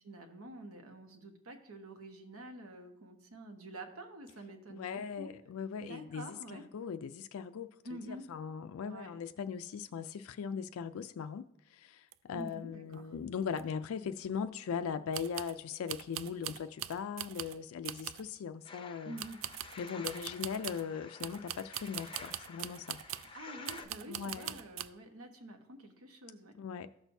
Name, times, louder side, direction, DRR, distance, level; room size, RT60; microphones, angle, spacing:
voice 1, 0.0-5.3 5.8-6.6 7.8-8.3 8.8-9.1 12.3-13.1 19.0-19.4 20.0-20.2 23.0-26.5, right 1 dB, 80° right, 1.1 m, -48 dB
voice 2, 4.7-7.7 8.0-19.2 19.8-23.0 24.1-24.5 26.6-26.9, left 6 dB, 75° left, 0.4 m, -39 dB
sound 1, 12.1-12.2 12.4-12.5 12.9-13.0 13.5-13.6 15.1-15.6 15.9-17.6 17.9-18.3 19.2-20.9 21.2-23.3 23.7-24.9, right 13 dB, 65° right, 0.3 m, -42 dB
sound 2, 18.6-23.9, left 5 dB, 25° left, 0.6 m, -51 dB
14.5 x 6.2 x 2.7 m
head